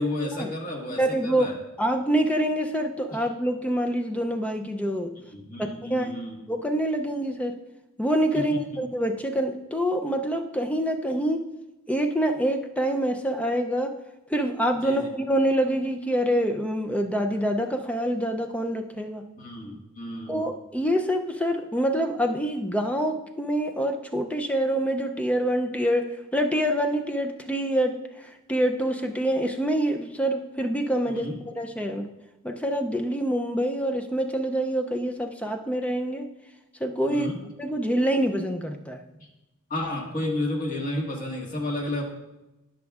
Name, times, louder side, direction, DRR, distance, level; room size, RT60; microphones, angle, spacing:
voice 1, 0.0-1.5 5.3-6.4 8.3-8.6 14.8-15.1 19.4-20.4 31.1-31.4 37.0-37.4 39.7-42.0, left 1 dB, 40° left, 0 dB, 1.6 m, -31 dB
voice 2, 0.9-1.5 1.8-5.1 5.6-6.1 6.5-7.6 8.0-11.4 11.9-14.0 14.3-19.2 20.3-28.0 28.5-32.1 32.4-36.3 36.8-37.3 37.6-39.0, right 1 dB, 5° left, 5 dB, 0.4 m, -26 dB
17.0 x 6.1 x 2.4 m, 0.98 s
head